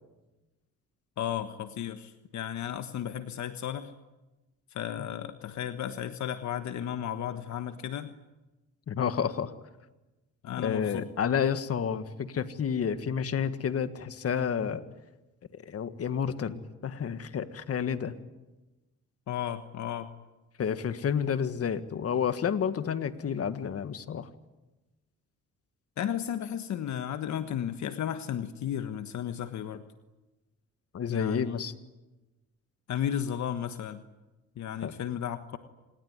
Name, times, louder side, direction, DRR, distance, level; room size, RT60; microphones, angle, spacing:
voice 1, 1.2-3.9 4.7-8.1 10.4-11.0 19.3-20.1 26.0-29.8 31.1-31.5 32.9-34.0 34.6-35.6, left 10 dB, 70° left, 9 dB, 1.4 m, -34 dB
voice 2, 8.9-9.5 10.6-14.8 15.6-18.1 20.6-24.3 30.9-31.7 34.8-34.9, left 7 dB, 50° left, 11 dB, 1.7 m, -30 dB
27.0 x 20.0 x 9.7 m, 1.1 s
cardioid pair, 90°, 30 cm